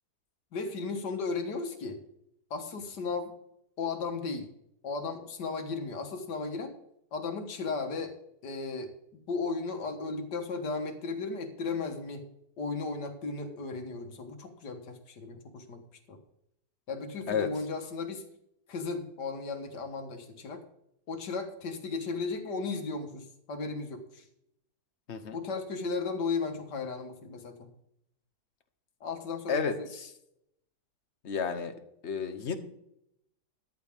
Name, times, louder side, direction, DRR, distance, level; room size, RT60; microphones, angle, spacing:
voice 1, 0.5-2.0 2.5-3.3 3.8-4.5 4.8-6.8 7.1-8.2 8.4-12.3 12.6-15.8 16.1-16.2 16.9-18.3 18.7-20.6 21.1-24.2 25.3-27.7 29.0-29.9, left 4 dB, 80° left, 6 dB, 2.0 m, -35 dB
voice 2, 25.1-25.4 29.5-30.1 31.2-31.7 32.0-32.5, left 6 dB, 45° left, 7 dB, 1.2 m, -31 dB
13.5 x 10.5 x 3.6 m, 0.79 s
omnidirectional pair, 1.8 m